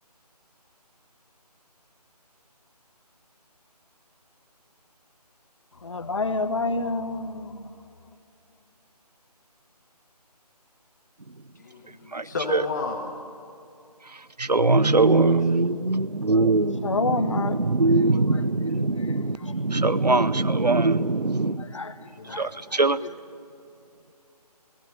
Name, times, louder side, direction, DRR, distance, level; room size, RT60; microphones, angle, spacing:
voice 1, 5.8-7.7 16.8-17.6 18.0-18.1 21.6-21.9 22.3-22.5, left 3 dB, 50° left, 11 dB, 1.3 m, -28 dB
voice 2, 11.5-13.0 22.2-22.5, left 4 dB, 25° left, 1 dB, 1.5 m, -32 dB
voice 3, 12.1-12.6 14.1-21.7 22.2-23.0, right 3 dB, 80° right, 15 dB, 0.9 m, -22 dB
28.0 x 18.0 x 6.8 m, 2.6 s
figure-of-eight pair, 155°, 21 cm